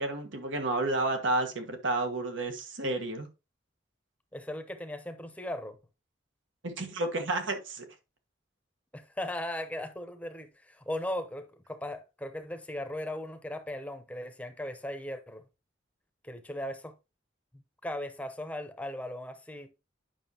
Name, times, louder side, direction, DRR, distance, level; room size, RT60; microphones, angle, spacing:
voice 1, 0.0-3.3 6.6-7.8, right 2 dB, 90° right, 1.4 m, -31 dB
voice 2, 4.3-5.8 8.9-15.4 16.2-16.9 17.8-19.7, left 1 dB, 5° left, 0.7 m, -38 dB
9.1 x 6.0 x 2.9 m
head